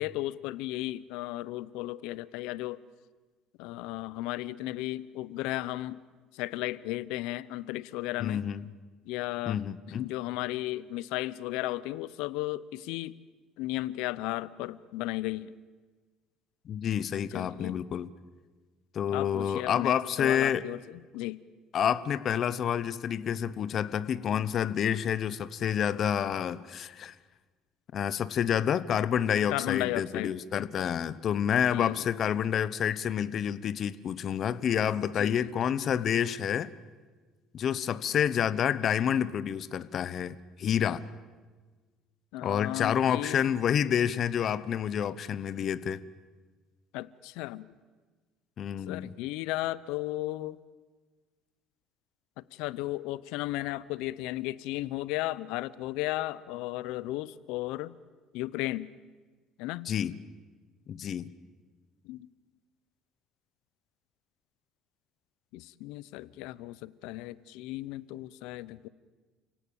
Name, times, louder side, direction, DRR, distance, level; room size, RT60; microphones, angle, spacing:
voice 1, 0.0-2.8 3.6-6.0 6.3-8.4 9.1-9.6 9.9-13.1 13.6-15.5 17.3-17.8 19.1-21.4 29.5-30.3 31.7-32.0 35.2-35.5 42.3-43.4 46.9-47.7 48.9-50.6 52.4-57.9 58.3-58.9 59.6-59.9 62.0-62.3 65.5-68.9, left 17 dB, 85° left, 19 dB, 0.8 m, -35 dB
voice 2, 8.2-8.7 9.5-10.1 16.7-18.1 18.9-20.6 21.7-27.1 27.9-36.7 37.5-41.0 42.4-46.0 48.6-49.1 59.8-60.2 60.9-61.3, left 9 dB, 40° left, 16 dB, 0.9 m, -28 dB
29.5 x 17.5 x 8.8 m, 1.4 s
cardioid pair, 140°, 0 cm